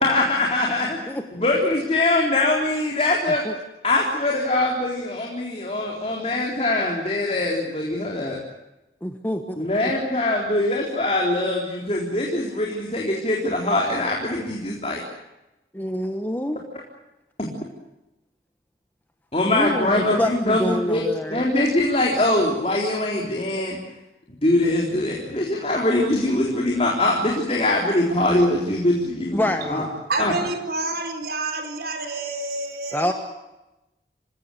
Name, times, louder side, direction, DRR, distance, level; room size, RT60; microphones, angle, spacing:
voice 1, 0.0-1.0 1.4-3.4 3.8-8.4 9.6-15.0 17.4-17.5 19.3-23.8 24.4-29.4 29.7-29.9 30.2-30.3, left 2 dB, 35° left, -1 dB, 3.9 m, -22 dB
voice 2, 9.0-9.7 15.7-16.6 19.5-21.4 29.3-29.9 32.9-33.1, left 1 dB, 10° left, 6 dB, 1.4 m, -26 dB
voice 3, 30.1-33.1, right 2 dB, 60° right, 6 dB, 4.3 m, -28 dB
28.0 x 17.5 x 9.3 m, 0.98 s
head